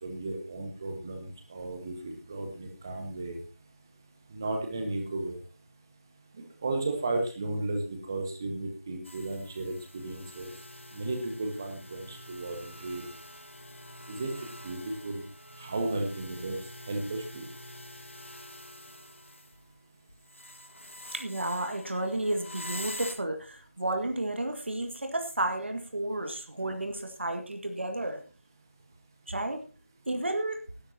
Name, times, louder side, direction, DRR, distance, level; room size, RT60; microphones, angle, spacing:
voice 1, 0.0-3.4 4.3-5.4 6.6-10.5 10.9-13.1 14.1-15.2 15.6-16.6 16.9-17.5, right 2 dB, 15° right, 4 dB, 1.4 m, -34 dB
sound 1, 9.0-19.8 20.1-23.1, left 1 dB, 65° left, 2.5 m, -46 dB
voice 2, 21.1-28.2 29.3-29.6 30.1-30.6, right 1 dB, 55° right, 5 dB, 2.0 m, -32 dB
19.5 x 12.0 x 2.9 m, 0.33 s
figure-of-eight pair, 170°, 7 cm